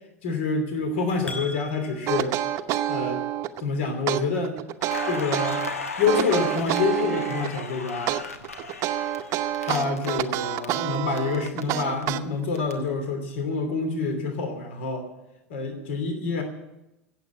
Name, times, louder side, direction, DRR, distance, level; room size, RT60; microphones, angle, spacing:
voice 1, 0.2-2.3 2.9-3.2 3.6-4.6 5.0-5.6 6.0-8.2 9.6-15.1 15.5-16.4, left 4 dB, 60° left, 6 dB, 2.8 m, -27 dB
sound 1, 1.0-2.3, left 2 dB, 15° left, 5.2 m, -39 dB
sound 2, 2.1-3.6 4.1-5.7 6.1-7.6 8.1-12.6, right 13 dB, 40° right, 0.8 m, -28 dB
Crackle, 4.8-10.7 10.9-12.7, left 3 dB, 75° left, 1.3 m, -36 dB
16.0 x 7.8 x 10.0 m, 0.92 s
figure-of-eight pair, 80°, 8 cm